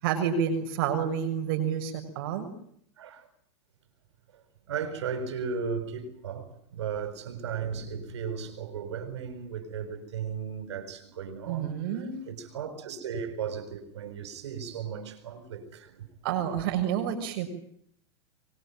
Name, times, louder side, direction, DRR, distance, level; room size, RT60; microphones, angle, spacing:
voice 1, 0.0-2.5 11.5-12.2 16.2-17.5, right 8 dB, 55° right, 6.6 m, -29 dB
voice 2, 3.0-3.3 4.3-4.4 4.7-11.7 12.3-16.1, right 6 dB, 85° right, 6.4 m, -36 dB
27.0 x 24.0 x 9.1 m
supercardioid pair, 150°, 14 cm